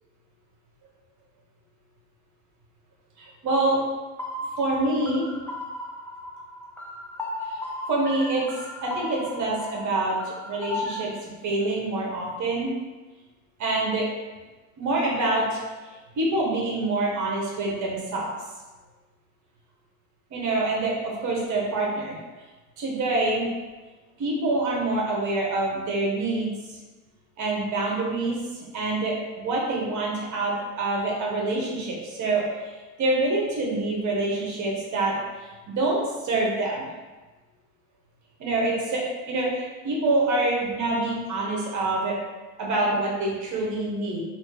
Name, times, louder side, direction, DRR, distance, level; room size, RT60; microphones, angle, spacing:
voice 1, 3.2-3.8 4.6-5.3 7.9-8.4 8.8-10.2 10.4-11.1 11.4-12.7 13.6-14.1 14.8-15.6 16.1-18.3 20.3-22.2 22.8-23.5 24.2-26.5 27.4-32.4 33.0-35.1 35.7-36.0 36.2-36.8 38.4-42.2 42.6-44.2, right 2 dB, 40° right, -2 dB, 1.2 m, -26 dB
sound 1, 4.2-11.0, left 1 dB, 5° left, 0.4 m, -36 dB
3.1 x 2.8 x 2.9 m, 1.2 s
hypercardioid pair, 75°, 44 cm